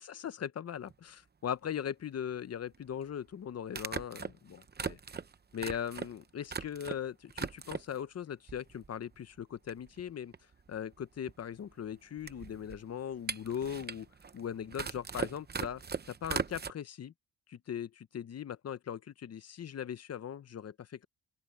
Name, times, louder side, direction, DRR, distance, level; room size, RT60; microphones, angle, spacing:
voice 1, 0.0-5.0 5.5-10.3 10.7-14.1 14.3-15.8 16.2-17.1 17.5-21.1, left 9 dB, 40° left, 0.7 m, -39 dB
sound 1, 0.9-1.0 2.7-2.8 3.7-7.0 7.3-8.0 8.5-9.1 9.4-9.5 9.7-16.7, right 5 dB, 25° right, 0.8 m, -39 dB
open air
wide cardioid pair, 155°, 38 cm